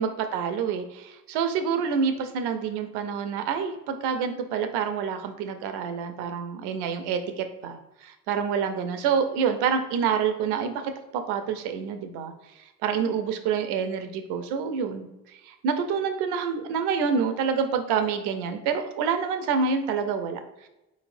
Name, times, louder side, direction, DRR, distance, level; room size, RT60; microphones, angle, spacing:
voice 1, 0.0-12.3 12.8-20.7, right 6 dB, 75° right, 7 dB, 0.6 m, -27 dB
4.1 x 4.1 x 2.5 m, 0.95 s
hypercardioid pair, 50°, 41 cm